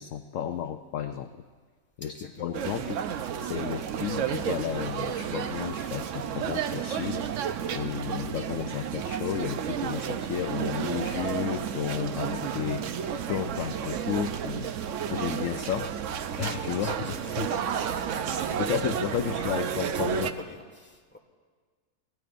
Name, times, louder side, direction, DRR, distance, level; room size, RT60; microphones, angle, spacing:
voice 1, 0.0-1.4 2.0-3.0 3.4-14.7 15.1-15.9 16.4-17.1 17.4-17.5 18.6-20.3, left 9 dB, 65° left, 8 dB, 0.8 m, -33 dB
voice 2, 2.0-2.6 16.7-19.0 19.9-21.2, left 1 dB, 5° left, 1 dB, 1.5 m, -46 dB
sound 1, 2.5-20.3, right 8 dB, 60° right, 0.9 m, -32 dB
24.0 x 18.5 x 2.5 m, 1.5 s
omnidirectional pair, 1.6 m